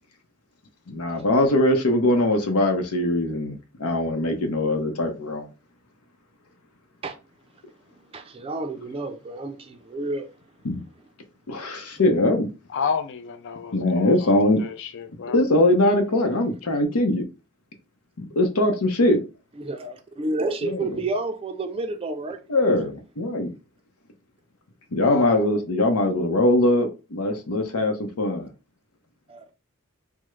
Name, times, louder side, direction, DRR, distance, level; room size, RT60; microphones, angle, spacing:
voice 1, 0.9-5.5 10.6-10.8 11.5-12.5 13.7-14.6 15.3-17.2 18.2-19.2 20.6-20.9 22.5-23.5 24.9-28.5, left 1 dB, 85° left, 0.7 m, -21 dB
voice 2, 8.1-10.3 19.6-22.4 29.3-29.4, right 2 dB, 25° right, 0.4 m, -30 dB
voice 3, 12.7-15.4 25.1-25.5, left 6 dB, 55° left, 0.4 m, -31 dB
3.5 x 2.1 x 3.1 m
head